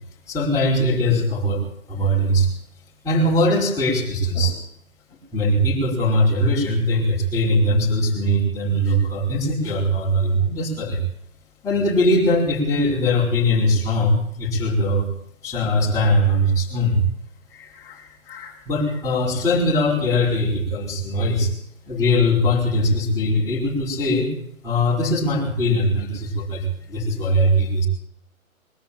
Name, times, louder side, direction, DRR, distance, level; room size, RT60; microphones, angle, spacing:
voice 1, 0.3-1.6 1.9-2.5 3.0-4.6 5.3-11.0 11.6-15.1 15.4-17.0 17.5-21.5 21.9-24.3 24.6-27.9, equal, 5° left, -5 dB, 5.8 m, -21 dB
22.0 x 13.5 x 9.0 m, 0.70 s
hypercardioid pair, 160°, 43 cm